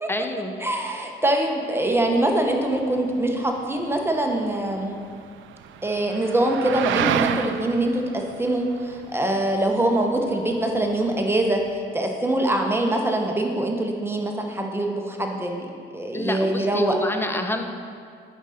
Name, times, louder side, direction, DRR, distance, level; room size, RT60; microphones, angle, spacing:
voice 1, 0.1-0.5 16.1-17.6, left 1 dB, 10° left, 6 dB, 0.7 m, -28 dB
voice 2, 0.6-5.0 5.8-11.6 11.9-15.7 15.9-17.0, right 1 dB, 10° right, 2 dB, 1.0 m, -23 dB
sound 1, 1.8-11.8, right 10 dB, 75° right, 0.4 m, -33 dB
9.3 x 6.3 x 4.3 m, 2.2 s
cardioid pair, 90°, 20 cm